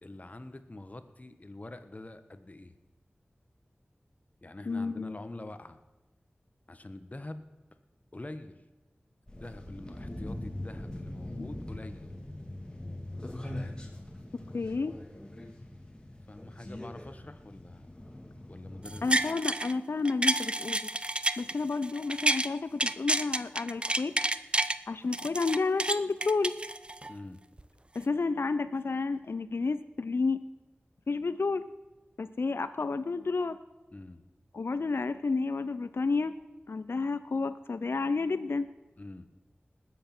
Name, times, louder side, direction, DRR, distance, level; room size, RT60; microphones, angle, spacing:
voice 1, 0.0-2.7 4.4-5.8 6.7-7.5 8.1-8.6 9.4-12.1 16.3-18.0 18.5-19.1 27.1-27.4 33.9-34.2 39.0-39.3, left 2 dB, 40° left, 9 dB, 1.2 m, -45 dB
voice 2, 4.7-5.2 11.3-11.5 14.5-15.0 19.0-20.9 21.4-24.1 24.9-26.5 27.9-30.4 31.1-31.6 32.2-33.6 34.5-36.3 36.7-38.7, left 4 dB, 75° left, 12 dB, 0.5 m, -31 dB
sound 1, 9.3-19.0, left 1 dB, 20° left, 2.2 m, -42 dB
sound 2, 18.9-19.7 20.1-22.5 22.8-24.8 25.1-27.1 27.6-27.7, right 2 dB, 25° right, 0.6 m, -29 dB
19.5 x 7.9 x 6.0 m, 1.1 s
wide cardioid pair, 65°, 4 cm